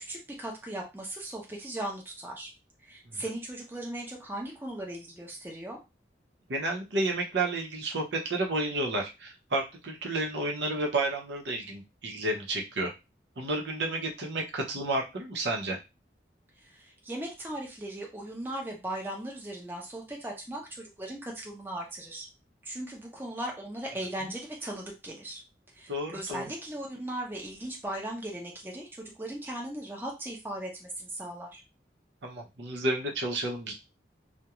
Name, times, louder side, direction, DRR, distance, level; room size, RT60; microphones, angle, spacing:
voice 1, 0.0-2.5 2.8-5.8 16.6-22.3 22.6-25.4 25.7-31.6, right 1 dB, 10° right, -1 dB, 0.6 m, -38 dB
voice 2, 6.5-12.9 13.4-15.8 24.2-24.3 25.9-26.4 32.2-33.7, right 2 dB, 80° right, 1 dB, 0.7 m, -31 dB
2.4 x 2.1 x 2.9 m, 0.25 s
head